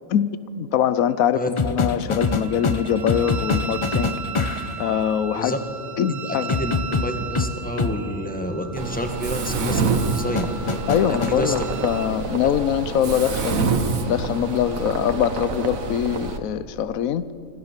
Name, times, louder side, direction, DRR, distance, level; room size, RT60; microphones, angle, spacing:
voice 1, 0.6-4.2 4.8-5.5 6.0-6.5 10.9-13.7 14.1-17.3, left 9 dB, 85° left, 15 dB, 1.1 m, -23 dB
sound 1, 1.6-4.8 6.5-8.0 10.3-11.4 13.4-13.6, left 4 dB, 30° left, 0.7 m, -24 dB
Wind instrument woodwind instrument, 2.2-12.1, right 7 dB, 50° right, 1.7 m, -37 dB
voice 2, 6.1-10.5 11.1-11.5, equal, 5° left, 6 dB, 1.7 m, -28 dB
Mechanisms, 8.8-16.4, right 4 dB, 80° right, 1.7 m, -27 dB
25.5 x 15.5 x 7.4 m, 2.8 s
omnidirectional pair, 1.4 m